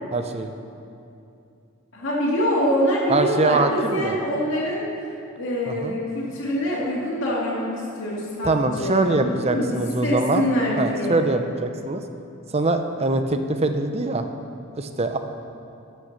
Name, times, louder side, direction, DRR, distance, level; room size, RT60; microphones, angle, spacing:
voice 1, 0.1-0.5 3.1-4.1 5.7-5.9 8.4-10.5 10.8-12.0 12.5-14.3 14.8-15.2, right 2 dB, 30° right, 7 dB, 0.5 m, -23 dB
voice 2, 1.9-4.9 5.4-11.2, equal, 65° left, -7 dB, 2.3 m, -25 dB
12.0 x 6.5 x 6.5 m, 2.6 s
head